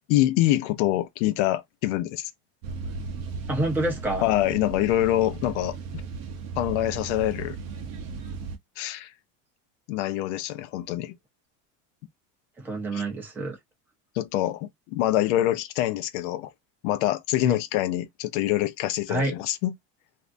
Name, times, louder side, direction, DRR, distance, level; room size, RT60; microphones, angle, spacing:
voice 1, 0.1-2.3 4.2-5.8 6.6-7.6 8.8-9.1 9.9-11.2 12.9-13.1 14.1-16.5 16.8-19.7, left 14 dB, 60° left, 0.7 m, -25 dB
sound 1, 2.6-8.6, right 4 dB, 40° right, 0.7 m, -36 dB
voice 2, 3.5-4.2 12.6-13.6 17.4-17.6 19.1-19.3, right 2 dB, 5° right, 0.6 m, -27 dB
3.2 x 2.6 x 2.5 m
cardioid pair, 180°, 39 cm